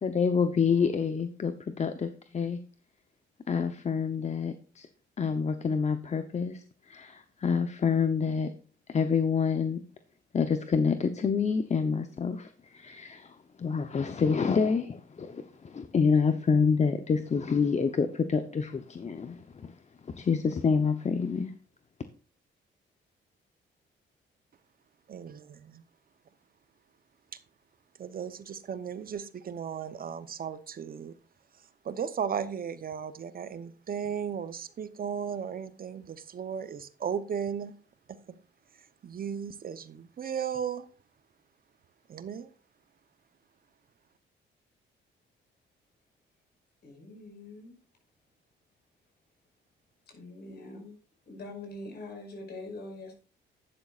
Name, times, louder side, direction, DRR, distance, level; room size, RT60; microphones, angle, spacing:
voice 1, 0.0-2.6 3.5-4.9 5.2-8.5 8.9-9.8 10.3-19.7 20.1-21.5, left 5 dB, 35° left, 0.8 m, -27 dB
voice 2, 25.1-25.8 28.0-31.1 31.6-37.7 38.1-38.4 39.0-40.9 42.1-42.5, right 7 dB, 45° right, 0.8 m, -36 dB
voice 3, 46.8-47.8 50.1-51.0 51.3-53.2, left 2 dB, 55° left, 5.4 m, -43 dB
12.0 x 9.9 x 2.5 m
cardioid pair, 90°, 20 cm